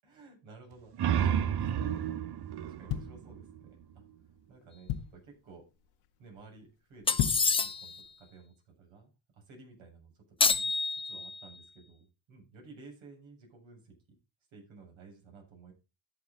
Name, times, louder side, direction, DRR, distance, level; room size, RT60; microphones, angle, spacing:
voice 1, 0.0-2.2 2.6-4.0 4.5-5.7 6.2-7.2 7.5-10.1 10.4-14.2 14.5-15.7, right 4 dB, 70° right, 1 dB, 7.7 m, -54 dB
sound 1, 0.7-4.1, right 9 dB, 50° right, 1.1 m, -32 dB
sound 2, 2.6-3.8 4.3-4.4 4.6-5.4 5.8-6.1 6.4-6.5 7.0-7.6 8.0-8.1, left 11 dB, 85° left, 1.5 m, -34 dB
sound 3, 7.1-8.0 10.4-11.5, left 4 dB, 10° left, 0.4 m, -28 dB
13.0 x 7.6 x 4.0 m, 0.28 s
supercardioid pair, 85°, 49 cm